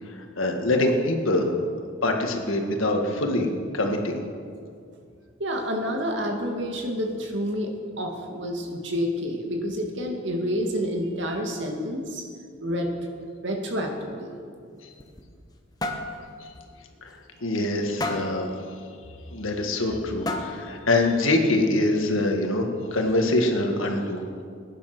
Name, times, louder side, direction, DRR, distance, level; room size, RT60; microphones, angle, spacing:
voice 1, 0.1-1.5 2.0-3.5 3.7-4.2 17.0-17.1 17.4-18.6 19.3-24.2, left 2 dB, 90° left, 3 dB, 1.8 m, -24 dB
voice 2, 5.4-7.7 8.0-12.2 12.6-12.9 13.4-14.4, equal, 65° right, 2 dB, 2.2 m, -29 dB
sound 1, 14.8-15.5 15.8-16.1 16.5-16.7 17.1-17.2 18.0-18.4 19.5-19.6 20.2-20.7, left 2 dB, 20° left, 1.1 m, -30 dB
17.5 x 10.0 x 6.1 m, 2.3 s
head